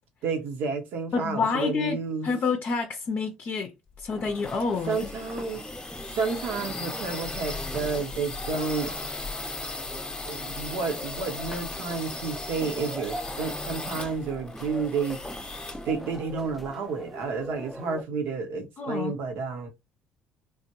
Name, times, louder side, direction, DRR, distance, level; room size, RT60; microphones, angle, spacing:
voice 1, 0.2-2.3 4.9-5.6 6.1-8.9 10.3-15.2 15.8-19.7, right 4 dB, 70° right, 0.8 m, -31 dB
voice 2, 1.1-2.0 2.2-3.7 4.0-5.0 18.8-19.2, left 5 dB, 50° left, 0.5 m, -28 dB
sound 1, 3.9-16.7, left 2 dB, 25° left, 0.8 m, -37 dB
sound 2, 4.1-18.0, equal, ahead, 0.4 m, -42 dB
3.3 x 2.2 x 2.9 m
hypercardioid pair, 60°, 4 cm